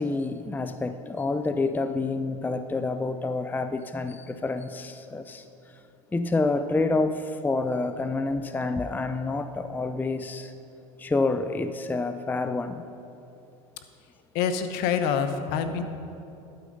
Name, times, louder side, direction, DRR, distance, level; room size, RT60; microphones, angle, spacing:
voice 1, 0.0-5.5 6.1-10.5 11.0-12.8, left 3 dB, 10° left, 10 dB, 0.5 m, -28 dB
voice 2, 14.3-15.8, left 7 dB, 65° left, 9 dB, 1.0 m, -26 dB
12.0 x 8.8 x 5.3 m, 2.8 s
hypercardioid pair, 95°, 18 cm